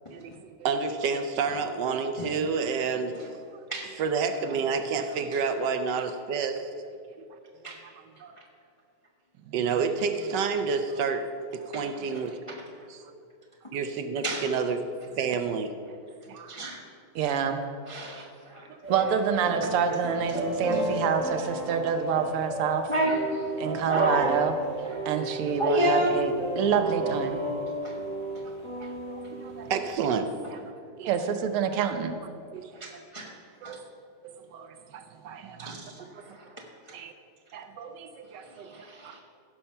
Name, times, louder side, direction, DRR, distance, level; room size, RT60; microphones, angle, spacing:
voice 1, 0.1-3.1 3.5-3.7 4.0-6.7 7.6-7.7 8.2-8.4 9.4-12.4 12.9-13.1 13.7-14.8 15.1-15.7 16.3-16.5 18.2-18.3 18.7-18.8 28.5-30.7 31.0-31.1 32.5-33.0 33.6-33.8 34.2-36.4 36.9-37.1 37.5-38.7 39.0-39.2, right 5 dB, 70° right, 8 dB, 1.1 m, -30 dB
voice 2, 7.6-8.0 8.4-8.5 11.7-11.8 12.5-12.6 13.1-13.2 13.6-13.8 14.2-14.5 16.5-16.8 17.9-18.7 19.6-19.7 20.7-21.0 22.0-22.1 22.9-24.4 24.8-26.2 27.8-28.0 28.7-28.9 32.7-33.8 35.6-37.0 38.4-39.2, equal, 45° left, -1 dB, 0.4 m, -31 dB
voice 3, 17.1-17.6 18.9-22.9 23.6-24.5 25.0-27.4 31.0-32.1, right 7 dB, 90° right, 7 dB, 1.7 m, -27 dB
sound 1, 18.8-29.9, right 1 dB, 35° right, 2.4 m, -33 dB
16.0 x 5.6 x 5.5 m, 2.4 s
omnidirectional pair, 2.4 m